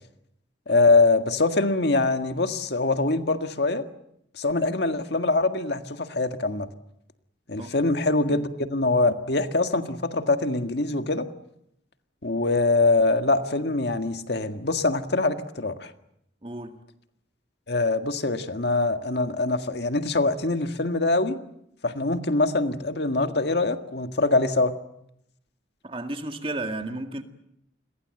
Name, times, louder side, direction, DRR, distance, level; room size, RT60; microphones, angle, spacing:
voice 1, 0.7-3.8 4.4-6.7 7.5-11.3 12.2-15.9 17.7-21.4 21.8-24.7, left 3 dB, 60° left, 1.8 m, -23 dB
voice 2, 16.4-16.8 25.8-27.2, right 2 dB, 30° right, 2.0 m, -33 dB
28.5 x 22.0 x 7.8 m
head